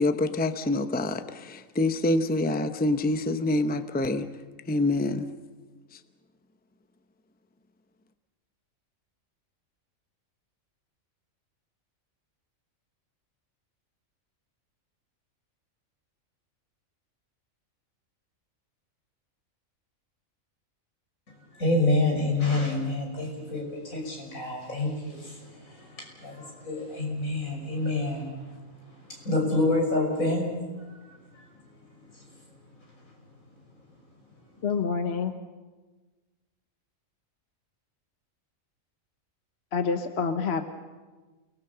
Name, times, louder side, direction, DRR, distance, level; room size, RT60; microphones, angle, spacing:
voice 1, 0.0-4.3 4.7-5.3, left 2 dB, 10° left, 9 dB, 0.7 m, -26 dB
voice 2, 21.5-28.4 29.0-31.4 32.1-32.2, left 2 dB, 85° left, 0 dB, 6.4 m, -28 dB
voice 3, 34.6-35.3 39.7-40.6, left 5 dB, 55° left, 7 dB, 1.3 m, -27 dB
28.5 x 19.5 x 6.9 m, 1.3 s
omnidirectional pair, 1.4 m